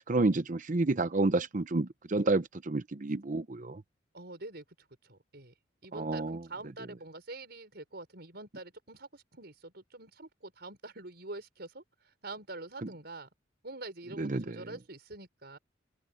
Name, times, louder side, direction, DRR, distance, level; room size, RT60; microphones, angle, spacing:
voice 1, 0.0-3.8 5.9-6.4 12.8-12.9 14.2-14.6, right 2 dB, 45° right, 0.8 m, -30 dB
voice 2, 4.1-4.6 5.0-5.5 5.8-13.3 13.6-15.6, right 2 dB, 60° right, 5.7 m, -45 dB
head